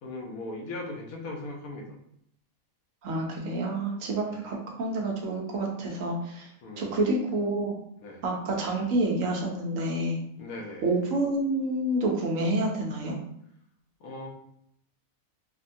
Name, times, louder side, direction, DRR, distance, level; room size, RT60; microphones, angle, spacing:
voice 1, 0.0-2.0 4.3-4.5 6.6-7.0 8.0-8.2 10.4-10.9 14.0-14.3, left 2 dB, 80° left, 0 dB, 1.1 m, -38 dB
voice 2, 3.0-6.5 6.8-7.7 8.2-10.2 10.8-13.2, right 2 dB, 70° right, 0 dB, 1.0 m, -28 dB
3.5 x 2.2 x 2.6 m, 0.72 s
omnidirectional pair, 1.5 m